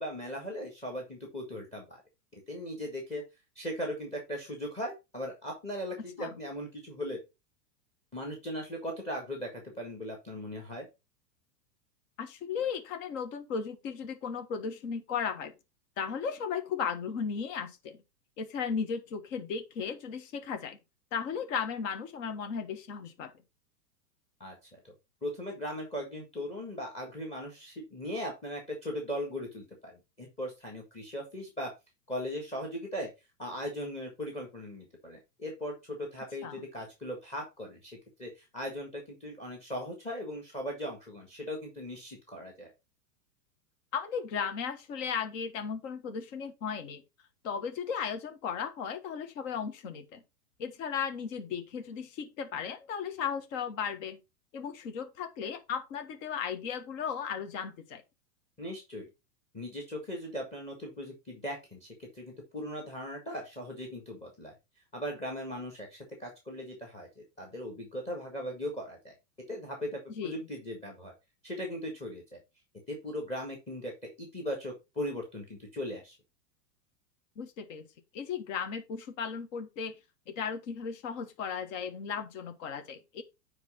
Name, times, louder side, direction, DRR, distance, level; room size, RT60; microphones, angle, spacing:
voice 1, 0.0-2.0 2.5-3.2 3.6-7.2 8.1-10.9 24.4-24.8 25.2-31.7 32.1-33.1 33.4-42.7 58.6-59.1 59.5-64.5 64.9-69.1 69.5-71.1 71.4-72.4 72.9-73.9 74.2-76.2, equal, 15° left, 1.7 m, -38 dB
voice 2, 12.2-15.5 16.0-18.0 18.4-20.8 21.1-23.3 36.4-36.6 43.9-47.0 47.4-50.2 50.6-54.2 54.5-58.0 70.1-70.3 77.4-77.9 78.1-79.9 80.3-83.2, left 6 dB, 50° left, 1.4 m, -35 dB
9.5 x 3.4 x 4.9 m
supercardioid pair, 150°, 50 cm